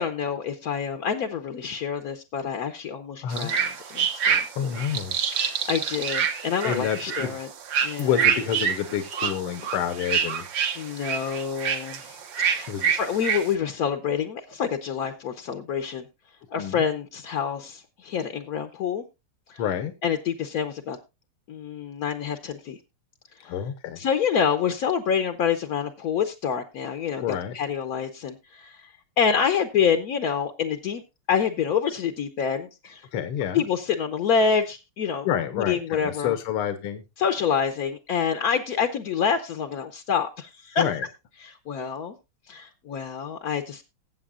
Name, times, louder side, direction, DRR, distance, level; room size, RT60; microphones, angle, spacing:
voice 1, 0.0-4.7 5.3-7.5 7.8-8.3 10.8-16.1 16.5-19.0 19.5-19.6 20.0-21.0 21.5-22.8 23.4-23.5 24.0-28.9 29.2-31.0 31.3-33.1 33.5-35.3 35.6-36.3 37.2-40.9 41.4-42.2 42.5-43.8, left 7 dB, 60° left, 6 dB, 1.0 m, -27 dB
voice 2, 3.2-3.5 4.3-5.2 6.6-7.4 8.0-10.5 12.7-12.9 16.6-16.8 19.6-19.9 23.4-24.0 27.2-27.6 33.1-33.6 35.2-37.0 40.8-41.1, left 9 dB, 80° left, 9 dB, 1.9 m, -28 dB
sound 1, 3.3-13.5, right 7 dB, 60° right, 1.7 m, -27 dB
19.5 x 8.1 x 2.4 m, 0.25 s
omnidirectional pair, 2.4 m